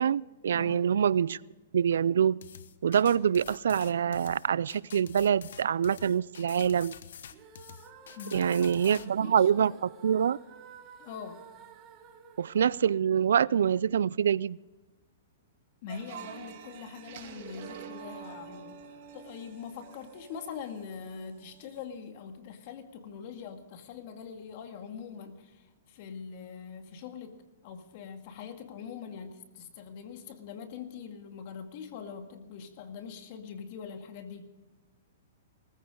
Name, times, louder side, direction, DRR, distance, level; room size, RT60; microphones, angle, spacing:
voice 1, 0.0-1.4 1.7-2.4 2.8-6.9 8.3-9.7 10.0-10.4 12.4-14.6, right 8 dB, 80° right, 0.4 m, -25 dB
voice 2, 0.5-0.9 8.2-9.8 11.0-11.4 15.8-18.8 19.1-34.5, left 6 dB, 50° left, 2.0 m, -43 dB
sound 1, 2.4-9.1, left 8 dB, 75° left, 1.0 m, -47 dB
sound 2, 7.3-13.5, right 7 dB, 25° right, 1.8 m, -52 dB
sound 3, 15.9-21.8, right 8 dB, 50° right, 2.6 m, -47 dB
19.5 x 14.5 x 3.8 m
hypercardioid pair, 145°, 0 cm